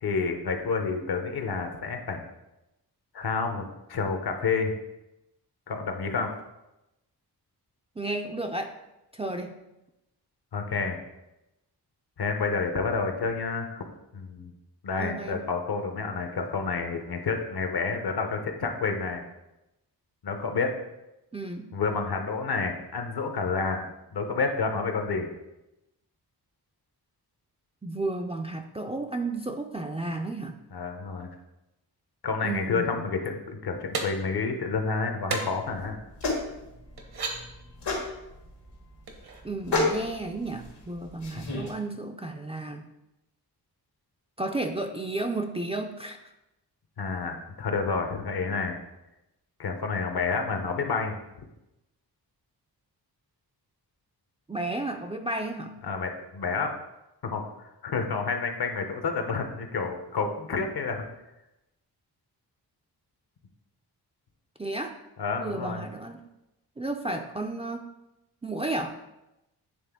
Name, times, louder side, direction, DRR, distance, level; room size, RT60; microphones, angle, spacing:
voice 1, 0.0-2.2 3.1-4.7 5.7-6.3 10.5-11.0 12.2-13.8 14.1-14.5 14.8-19.2 20.2-20.8 21.7-23.9 24.1-25.3 30.7-31.3 32.2-36.0 47.0-48.8 49.6-51.1 55.8-56.7 57.2-61.0 65.2-65.8, left 4 dB, 65° left, 5 dB, 0.9 m, -29 dB
voice 2, 8.0-8.7 9.1-9.5 15.0-15.4 21.3-21.7 27.8-30.6 32.4-33.1 39.4-42.9 44.4-46.2 54.5-55.7 64.6-65.0 65.4-66.2 66.8-67.9 68.4-69.0, right 2 dB, 15° right, 4 dB, 0.3 m, -32 dB
sound 1, 33.9-34.1 35.3-35.4 36.2-36.3 37.0-37.4 39.1-39.4, right 4 dB, 70° right, 1.0 m, -31 dB
sound 2, 35.6-41.7, left 3 dB, 80° left, 1.6 m, -32 dB
7.8 x 3.3 x 3.6 m, 0.92 s
wide cardioid pair, 95°, 40 cm